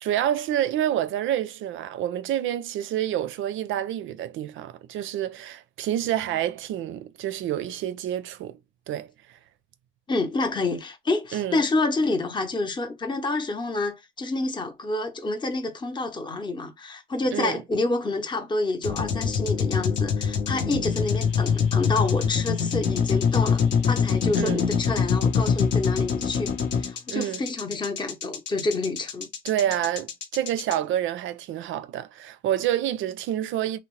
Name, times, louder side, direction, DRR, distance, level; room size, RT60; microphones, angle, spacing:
voice 1, 0.0-8.6 8.9-9.1 11.3-11.6 17.3-17.6 24.4-24.6 27.1-27.4 29.4-33.8, right 11 dB, 80° right, 0.4 m, -28 dB
voice 2, 10.1-29.3, left 2 dB, 25° left, 0.7 m, -28 dB
sound 1, 18.8-30.7, left 6 dB, 65° left, 0.7 m, -24 dB
2.8 x 2.0 x 3.0 m
cardioid pair, 90°, 20 cm